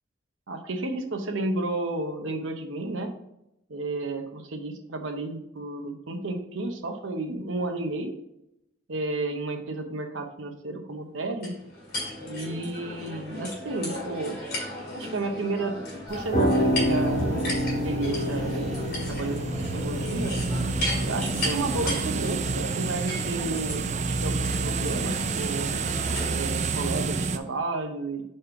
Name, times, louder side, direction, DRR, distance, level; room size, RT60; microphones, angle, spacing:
voice 1, 0.5-3.1 3.7-8.1 8.9-11.5 12.3-14.4 14.9-15.8 16.1-17.2 17.8-19.5 19.7-20.3 21.0-25.7 26.3-28.2, right 2 dB, 80° right, 5 dB, 0.9 m, -32 dB
sound 1, 11.4-26.9, left 1 dB, 50° left, 2.5 m, -36 dB
sound 2, 16.1-22.1, equal, 35° left, 1.2 m, -28 dB
sound 3, 16.7-27.4, right 4 dB, 35° right, 0.4 m, -30 dB
5.1 x 4.3 x 4.6 m, 0.82 s
head